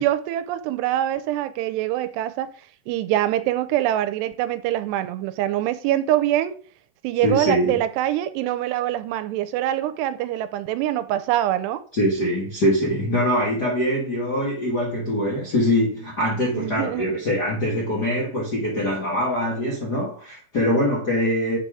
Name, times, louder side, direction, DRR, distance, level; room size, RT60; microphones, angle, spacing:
voice 1, 0.0-2.5 2.9-6.6 7.0-11.8 16.5-17.2, right 13 dB, 85° right, 2.7 m, -24 dB
voice 2, 7.2-7.8 11.9-21.6, equal, 50° left, 1.2 m, -23 dB
8.1 x 4.1 x 4.8 m
omnidirectional pair, 4.8 m